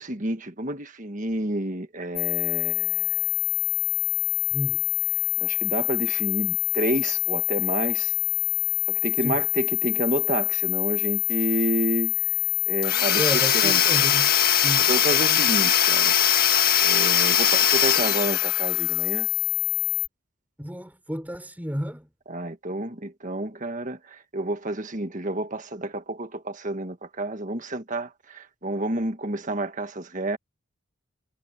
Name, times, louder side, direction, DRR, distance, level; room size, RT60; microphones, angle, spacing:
voice 1, 0.0-3.2 5.4-8.1 8.9-12.1 12.7-13.3 13.5-13.8 14.9-16.1 16.8-19.3 22.3-30.4, right 2 dB, 35° right, 1.6 m, -30 dB
sound 1, 2.2-20.1, left 24 dB, 25° left, 5.8 m, -26 dB
voice 2, 4.5-4.8 9.2-9.4 13.2-14.3 14.6-15.4 20.6-22.1, equal, 10° right, 4.3 m, -32 dB
Domestic sounds home sounds / Tools, 12.8-18.9, left 9 dB, 45° left, 1.8 m, -22 dB
head